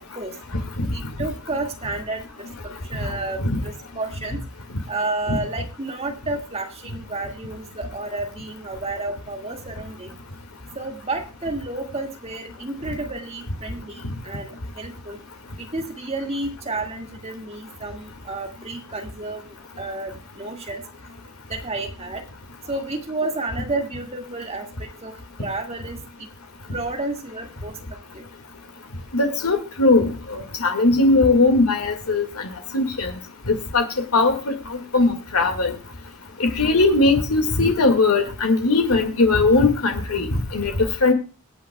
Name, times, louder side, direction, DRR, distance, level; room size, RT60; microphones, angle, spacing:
voice 1, 0.9-2.5 2.9-4.4 4.9-10.2 10.7-15.2 15.6-19.5 19.8-20.8 21.5-22.2 22.7-25.1 25.4-26.3 26.7-27.7 28.1-28.2, right 2 dB, 30° right, 3 dB, 2.0 m, -31 dB
voice 2, 29.1-33.1 33.5-33.8 34.1-35.7 36.4-40.7 41.0-41.1, left 3 dB, 90° left, 4 dB, 2.0 m, -19 dB
24.5 x 8.7 x 2.3 m, 0.33 s
head